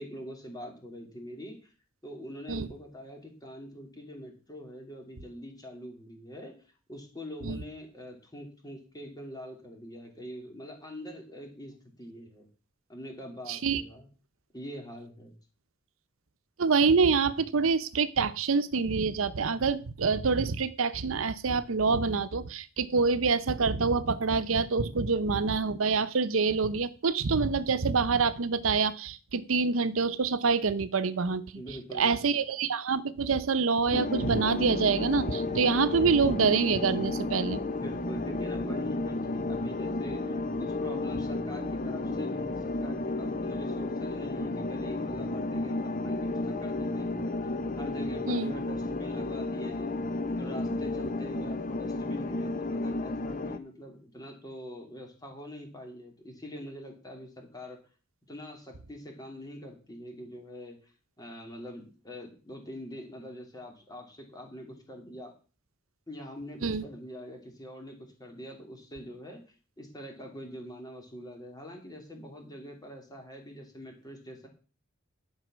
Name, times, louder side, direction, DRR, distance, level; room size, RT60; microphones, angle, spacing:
voice 1, 0.0-1.7 2.0-6.6 6.9-12.5 12.9-14.1 14.5-15.3 31.5-32.2 37.8-50.0 50.4-57.8 58.3-60.9 61.2-65.3 66.1-69.4 69.8-74.5, equal, 20° left, 2 dB, 2.9 m, -44 dB
voice 2, 13.5-13.8 16.6-31.4 31.9-37.6 48.3-48.5 66.6-66.8, right 4 dB, 90° right, 13 dB, 0.7 m, -26 dB
sound 1, 33.9-53.6, left 2 dB, 40° left, 0.8 m, -32 dB
11.0 x 5.5 x 6.2 m, 0.36 s
head